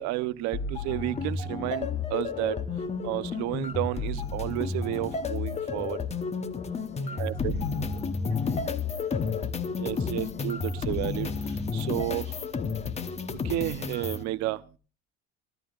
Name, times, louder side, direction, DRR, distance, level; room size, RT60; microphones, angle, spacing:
voice 1, 0.0-2.6 3.0-6.0 7.2-7.5 9.8-11.3 11.7-12.2 13.4-14.6, right 16 dB, 60° right, 15 dB, 0.9 m, -31 dB
sound 1, 0.5-14.2, left 4 dB, 20° left, 1.1 m, -31 dB
voice 2, 6.8-9.5, right 8 dB, 80° right, 6 dB, 2.9 m, -53 dB
29.5 x 11.5 x 2.5 m, 0.34 s
cardioid pair, 130°, 31 cm